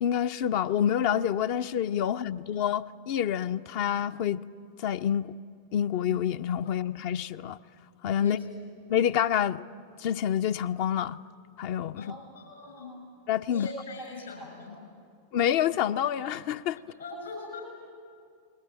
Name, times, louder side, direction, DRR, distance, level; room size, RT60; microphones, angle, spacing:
voice 1, 0.0-4.4 4.8-5.3 5.7-7.6 8.0-8.4 8.9-9.6 10.0-11.2 11.6-12.1 13.3-13.7 15.3-16.8, left 9 dB, 45° left, 10 dB, 0.6 m, -27 dB
voice 2, 12.0-12.9 13.5-14.8 17.0-17.6, left 2 dB, 70° left, 2 dB, 6.2 m, -41 dB
30.0 x 21.0 x 7.6 m, 2.3 s
figure-of-eight pair, 90°, 0 cm